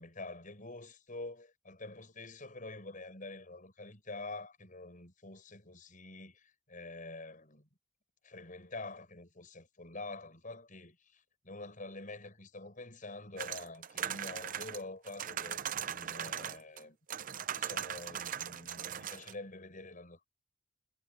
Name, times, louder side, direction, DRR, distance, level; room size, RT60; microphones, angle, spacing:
voice 1, 0.0-7.7 8.2-17.2 17.5-20.3, left 2 dB, 45° left, 7.8 m, -47 dB
sound 1, 13.4-16.8 17.1-19.3, right 9 dB, 45° right, 0.6 m, -39 dB
head